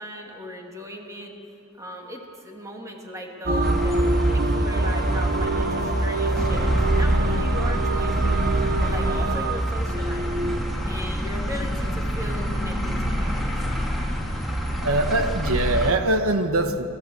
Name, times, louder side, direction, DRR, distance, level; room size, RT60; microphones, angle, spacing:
voice 1, 0.0-1.4 1.7-10.3 10.8-13.6, equal, 15° right, 1 dB, 2.3 m, -38 dB
sound 1, 3.5-10.6, right 2 dB, 45° right, 1.1 m, -25 dB
sound 2, 3.6-15.9, equal, ahead, 2.3 m, -26 dB
voice 2, 14.8-16.8, right 2 dB, 75° right, 7 dB, 1.3 m, -22 dB
23.5 x 14.5 x 7.9 m, 2.6 s
head